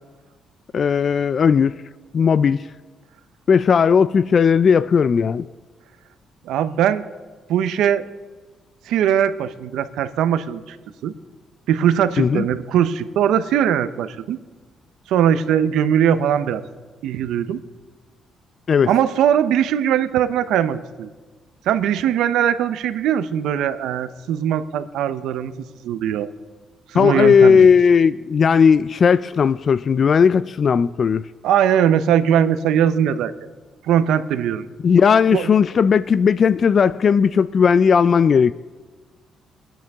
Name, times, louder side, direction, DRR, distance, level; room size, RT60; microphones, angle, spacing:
voice 1, 0.7-1.8 2.1-2.7 3.5-5.5 12.2-12.5 18.7-18.9 26.9-31.2 34.8-38.5, left 6 dB, 50° left, 0.3 m, -16 dB
voice 2, 6.4-7.0 7.5-8.0 8.9-10.8 11.0-11.1 11.7-14.4 15.1-16.6 17.0-17.6 18.9-21.1 21.6-26.3 26.9-27.7 31.4-33.3 33.8-34.7 35.3-35.5, right 9 dB, 85° right, 0.7 m, -20 dB
23.5 x 9.1 x 3.6 m
cardioid pair, 90°, 0 cm